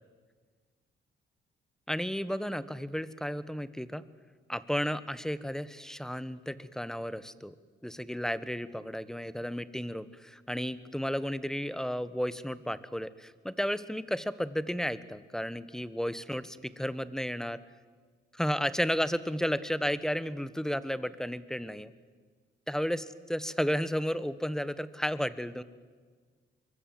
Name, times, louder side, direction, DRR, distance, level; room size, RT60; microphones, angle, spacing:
voice 1, 1.9-4.0 4.5-7.5 7.8-17.6 18.3-21.9 22.7-25.6, equal, 5° left, 15 dB, 1.2 m, -33 dB
24.0 x 23.5 x 7.7 m, 1.5 s
cardioid pair, 90°, 20 cm